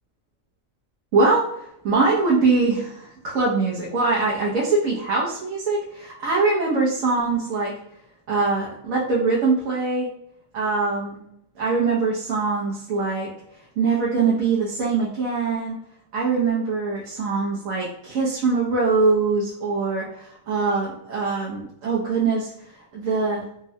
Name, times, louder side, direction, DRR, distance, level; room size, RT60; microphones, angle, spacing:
voice 1, 1.1-1.4 1.8-7.7 8.3-10.1 10.5-11.2 11.6-13.3 13.8-15.8 16.1-22.5 22.9-23.5, right 4 dB, 85° right, -4 dB, 1.1 m, -22 dB
3.5 x 2.0 x 2.7 m, 0.78 s
omnidirectional pair, 1.4 m